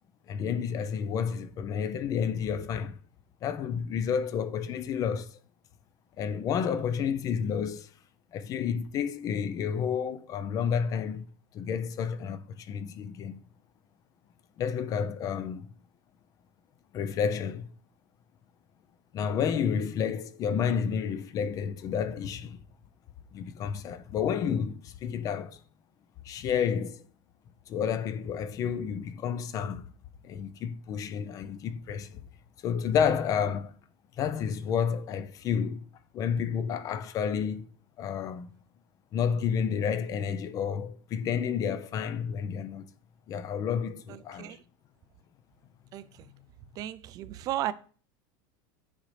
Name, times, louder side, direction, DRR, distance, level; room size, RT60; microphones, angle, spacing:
voice 1, 0.3-3.0 3.4-5.4 6.2-7.9 8.3-11.3 11.5-13.4 14.6-15.7 16.9-17.7 19.1-22.6 23.3-25.6 26.2-27.0 27.7-29.8 30.2-32.2 32.6-33.7 34.2-35.8 36.1-37.7 38.0-38.5 39.1-42.9 43.3-44.6, left 7 dB, 30° left, 0.5 m, -30 dB
voice 2, 44.1-44.6 45.9-46.3 46.8-47.7, right 13 dB, 35° right, 0.4 m, -35 dB
9.3 x 4.0 x 3.3 m
supercardioid pair, 150°, 11 cm